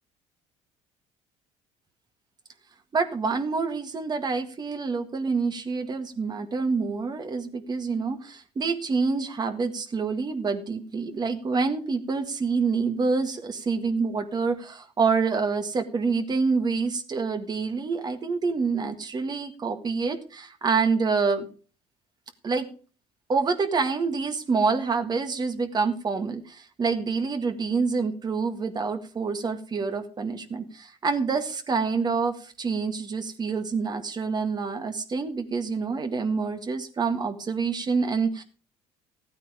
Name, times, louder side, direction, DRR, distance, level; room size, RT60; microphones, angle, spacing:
voice 1, 2.9-21.5 22.4-22.7 23.3-38.4, right 4 dB, 35° right, 8 dB, 1.8 m, -27 dB
14.0 x 9.1 x 5.0 m, 0.39 s
cardioid pair, 105°, 13 cm